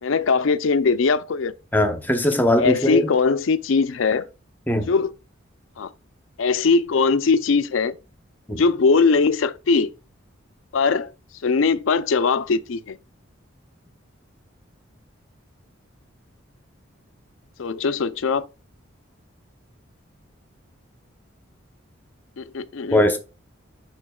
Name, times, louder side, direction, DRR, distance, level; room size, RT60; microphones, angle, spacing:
voice 1, 0.0-1.5 2.6-4.3 4.9-5.1 5.8-5.9 6.4-8.0 8.5-9.9 10.7-11.1 11.4-13.0 17.6-18.5 22.4-23.0, left 4 dB, 75° left, 0.5 m, -20 dB
voice 2, 1.7-3.1 4.7-4.9 8.5-8.6 22.9-23.2, left 1 dB, 10° left, 0.7 m, -20 dB
11.0 x 4.5 x 2.3 m
head